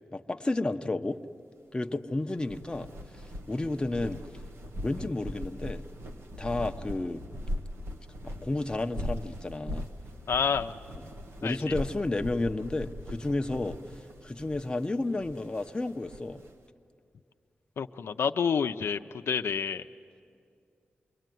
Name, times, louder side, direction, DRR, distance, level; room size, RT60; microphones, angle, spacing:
voice 1, 0.1-1.2 1.7-2.9 3.5-4.2 4.8-5.8 6.4-7.2 8.2-9.8 11.4-13.8 14.2-16.4, left 2 dB, 20° left, 6 dB, 0.8 m, -31 dB
sound 1, 2.3-16.5, left 1 dB, 90° right, 1.4 m, -40 dB
voice 2, 10.3-10.8 11.4-11.6 17.8-19.0 19.3-19.8, left 6 dB, 85° left, 7 dB, 0.6 m, -28 dB
28.0 x 22.5 x 9.3 m, 2.3 s
wide cardioid pair, 95°, 4 cm